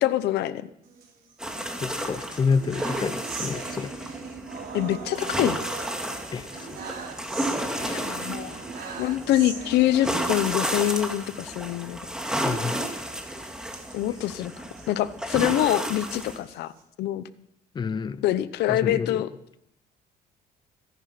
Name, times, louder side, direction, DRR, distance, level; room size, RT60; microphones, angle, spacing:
voice 1, 0.0-0.7 4.7-5.6 7.9-8.6 9.0-12.0 13.9-14.5 14.9-16.7 17.0-17.2 18.2-19.3, left 13 dB, 80° left, 0.9 m, -25 dB
sound 1, 0.8-1.8 2.2-11.0 11.3-11.5 11.7-11.9 12.4-14.9 15.4-16.8, right 5 dB, 60° right, 4.9 m, -40 dB
sound 2, 1.4-16.4, equal, 5° right, 2.3 m, -32 dB
voice 2, 1.8-3.9 6.3-6.8 12.4-12.9 14.3-14.4 17.7-18.2 18.7-19.2, left 5 dB, 25° left, 0.6 m, -29 dB
22.0 x 10.5 x 6.0 m
cardioid pair, 110°, 17 cm